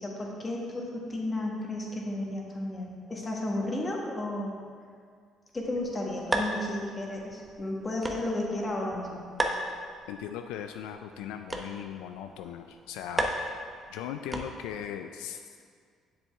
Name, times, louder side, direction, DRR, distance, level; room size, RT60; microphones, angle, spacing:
voice 1, 0.0-4.6 5.5-9.2, left 1 dB, 30° left, -1 dB, 1.5 m, -33 dB
sound 1, 5.6-14.9, right 1 dB, 15° right, 0.8 m, -36 dB
voice 2, 10.1-13.3 13.9-15.6, left 9 dB, 90° left, 6 dB, 0.3 m, -38 dB
7.6 x 7.0 x 3.5 m, 2.1 s
supercardioid pair, 80°, 0 cm